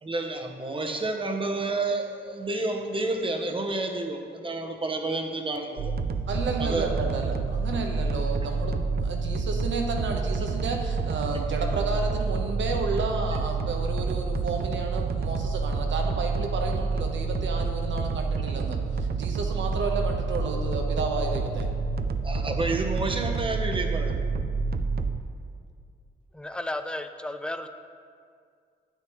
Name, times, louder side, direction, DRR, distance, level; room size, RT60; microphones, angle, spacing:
voice 1, 0.0-5.9 6.6-6.9 22.2-24.2, right 2 dB, 30° right, 3 dB, 0.9 m, -30 dB
sound 1, 5.8-25.2, right 4 dB, 55° right, 0.5 m, -28 dB
voice 2, 6.3-21.7, right 4 dB, 80° right, 2 dB, 1.1 m, -32 dB
voice 3, 26.3-27.7, left 1 dB, 5° left, 8 dB, 0.4 m, -33 dB
9.1 x 8.8 x 3.1 m, 2.2 s
cardioid pair, 95°, 19 cm